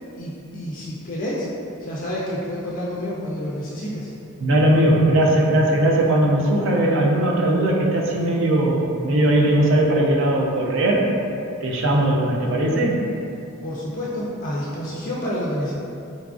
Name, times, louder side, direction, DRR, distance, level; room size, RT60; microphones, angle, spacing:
voice 1, 0.1-1.5 1.8-4.1 13.6-15.7, equal, 35° left, -6 dB, 0.3 m, -29 dB
voice 2, 4.4-11.1 11.6-13.1, right 1 dB, 60° right, -1 dB, 0.4 m, -19 dB
3.9 x 2.3 x 2.4 m, 2.7 s
head